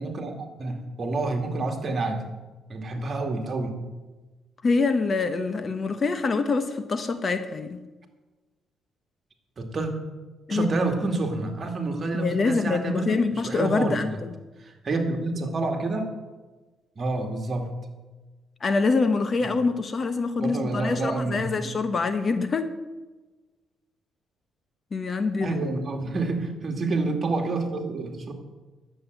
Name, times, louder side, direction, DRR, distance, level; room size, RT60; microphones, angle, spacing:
voice 1, 0.0-2.2 2.7-3.8 9.6-9.9 10.5-13.2 13.4-14.0 14.6-16.1 17.0-17.7 19.4-19.5 20.4-21.8 25.4-28.3, right 3 dB, 40° right, 3 dB, 2.3 m, -28 dB
voice 2, 4.6-7.8 10.5-10.7 12.1-14.3 18.6-22.7 24.9-25.6, left 4 dB, 40° left, 10 dB, 1.1 m, -25 dB
11.0 x 7.8 x 9.2 m, 1.2 s
cardioid pair, 90°, 0 cm